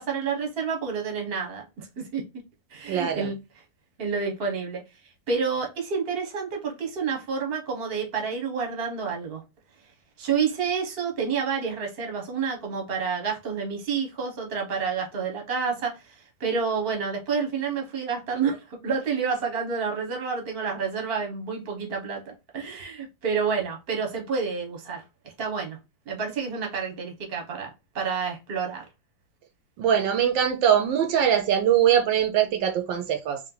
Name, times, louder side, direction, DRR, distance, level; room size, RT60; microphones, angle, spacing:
voice 1, 0.0-1.9 2.1-2.2 2.7-3.4 4.0-4.8 5.3-9.4 10.2-25.8 26.1-28.8, right 5 dB, 35° right, 1.1 m, -29 dB
voice 2, 2.9-3.3 29.8-33.4, right 9 dB, 75° right, 1.3 m, -22 dB
3.3 x 2.9 x 3.8 m
omnidirectional pair, 2.1 m